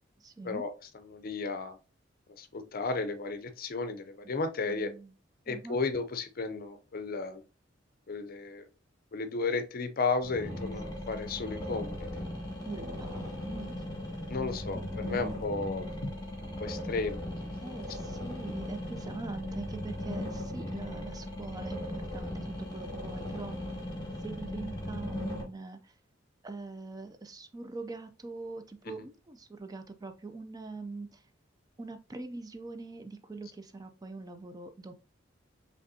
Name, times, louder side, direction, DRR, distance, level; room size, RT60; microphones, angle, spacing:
voice 1, 0.2-0.6 4.7-5.1 5.5-5.8 10.5-10.7 12.6-13.8 14.7-15.4 17.6-23.6 24.2-26.0 26.4-31.3 31.8-34.9, right 3 dB, 20° right, 8 dB, 0.4 m, -43 dB
voice 2, 1.1-1.8 2.3-4.9 5.5-7.4 8.1-8.6 9.1-12.2 14.3-15.9 16.4-17.8 28.9-29.0, left 4 dB, 50° left, 10 dB, 0.6 m, -34 dB
sound 1, 10.2-25.4, left 1 dB, 20° left, 1.5 m, -38 dB
5.2 x 3.4 x 2.7 m, 0.33 s
head